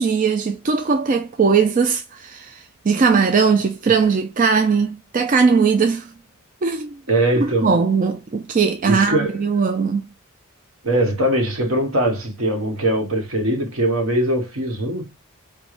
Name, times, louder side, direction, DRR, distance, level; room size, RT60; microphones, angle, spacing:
voice 1, 0.0-6.1 6.6-7.0 7.4-10.1, right 5 dB, 35° right, 0.3 m, -19 dB
voice 2, 7.1-7.7 8.8-9.4 10.8-15.1, right 1 dB, 75° right, 1.2 m, -21 dB
4.7 x 2.2 x 2.5 m
head